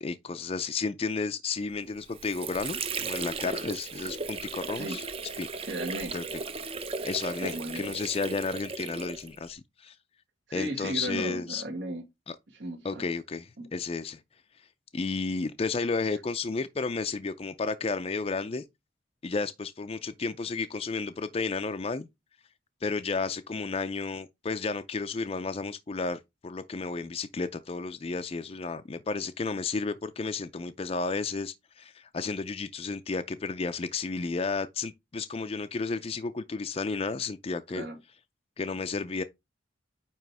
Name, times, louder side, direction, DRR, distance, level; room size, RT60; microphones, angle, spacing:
voice 1, 0.0-5.0 5.4-5.5 6.1-6.2 7.0-10.0 10.5-11.6 12.3-12.4 12.8-14.2 14.9-18.6 19.2-22.1 22.8-37.9 38.6-39.2, left 4 dB, 30° left, 0.4 m, -32 dB
Water / Sink (filling or washing), 1.8-9.5, right 4 dB, 30° right, 0.6 m, -36 dB
voice 2, 5.6-6.1 7.4-7.9 10.5-12.0 12.5-13.0 13.6-13.7 37.7-38.0, right 1 dB, 75° right, 1.9 m, -35 dB
9.0 x 3.0 x 4.7 m
head